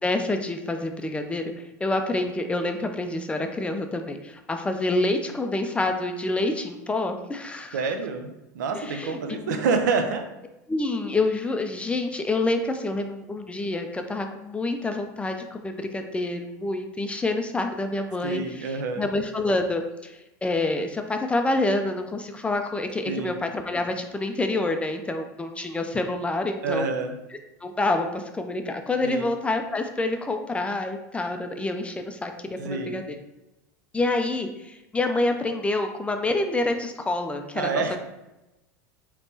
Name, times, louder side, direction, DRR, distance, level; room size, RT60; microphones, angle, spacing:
voice 1, 0.0-7.8 8.7-9.6 10.7-26.9 27.6-33.2 33.9-37.8, left 2 dB, 10° left, 5 dB, 0.3 m, -27 dB
voice 2, 7.7-10.3 18.2-19.1 23.1-23.3 26.6-27.2 29.0-29.3 32.6-33.0 37.5-38.0, right 4 dB, 80° right, 6 dB, 0.5 m, -27 dB
3.4 x 2.9 x 2.7 m, 0.97 s
hypercardioid pair, 100°, 10 cm